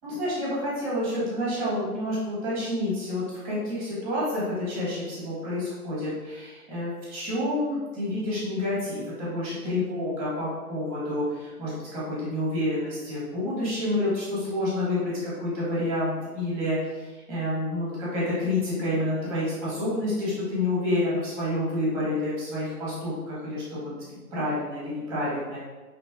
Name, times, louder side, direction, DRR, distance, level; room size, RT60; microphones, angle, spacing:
voice 1, 0.0-25.6, left 1 dB, 5° right, -8 dB, 0.9 m, -29 dB
5.9 x 3.0 x 2.3 m, 1.3 s
hypercardioid pair, 160°, 45 cm